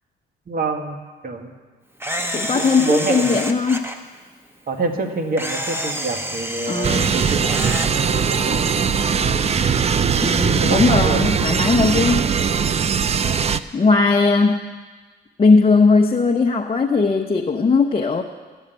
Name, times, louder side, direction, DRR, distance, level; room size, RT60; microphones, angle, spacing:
voice 1, 0.5-1.0 1.2-1.5 2.5-3.4 4.7-8.7 10.6-11.2, right 3 dB, 50° right, 5 dB, 1.7 m, -26 dB
Camera, 2.0-4.0 5.4-7.9, equal, 10° right, 1.2 m, -28 dB
voice 2, 2.3-3.9 6.7-7.2 10.2-12.3 13.7-14.7 15.4-18.2, left 4 dB, 25° left, 2 dB, 0.8 m, -18 dB
sound 1, 6.8-13.6, right 6 dB, 30° right, 0.5 m, -20 dB
13.5 x 7.3 x 9.1 m, 1.4 s
cardioid pair, 90°, 20 cm